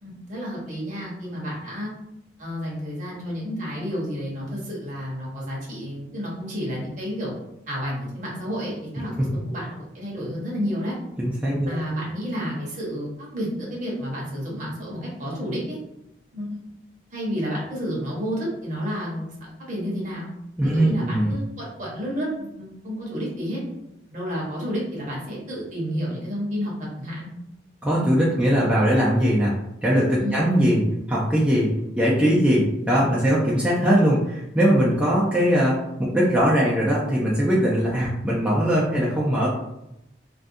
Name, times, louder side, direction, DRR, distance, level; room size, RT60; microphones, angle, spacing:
voice 1, 0.0-1.9 2.4-7.3 7.7-9.6 9.9-11.0 11.7-15.8 16.3-16.7 17.1-19.3 19.7-20.2 20.6-23.6 24.1-26.7 27.0-27.3 30.2-30.4, equal, 45° right, -5 dB, 0.9 m, -30 dB
voice 2, 11.2-11.8 20.6-21.3 27.8-29.5 29.8-39.5, equal, 5° right, -7 dB, 0.3 m, -21 dB
2.4 x 2.2 x 2.6 m, 0.85 s
head